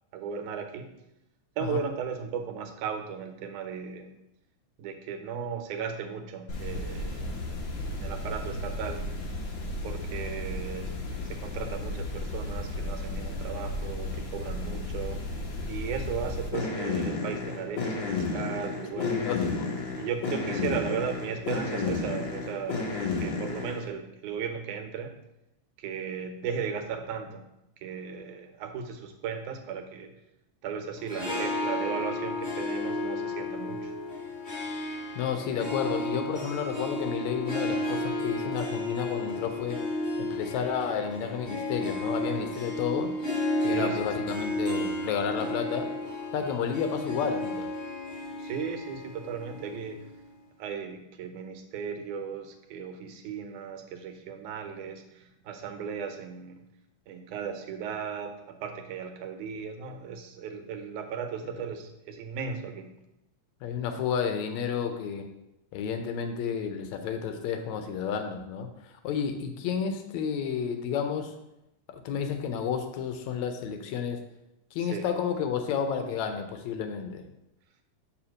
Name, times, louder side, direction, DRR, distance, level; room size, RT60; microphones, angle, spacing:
voice 1, 0.1-0.9 1.6-4.1 4.8-7.6 8.0-9.0 9.8-15.3 15.7-19.2 20.0-22.9 23.2-25.2 25.8-27.4 27.8-30.1 30.6-33.9 43.6-44.3 48.4-50.1 50.6-56.6 57.1-62.9 74.8-75.1, right 7 dB, 90° right, 6 dB, 2.3 m, -36 dB
sound 1, 6.5-23.9, left 3 dB, 55° left, 1.4 m, -33 dB
voice 2, 19.0-19.7 35.2-39.8 40.2-43.1 43.6-45.9 46.3-47.7 63.6-65.3 65.7-68.7 69.0-71.3 71.9-74.2 74.7-77.2, left 7 dB, 75° left, 7 dB, 1.9 m, -31 dB
Harp, 30.9-50.3, left 1 dB, 25° left, 1.3 m, -33 dB
5.8 x 4.3 x 6.2 m, 0.88 s
omnidirectional pair, 3.4 m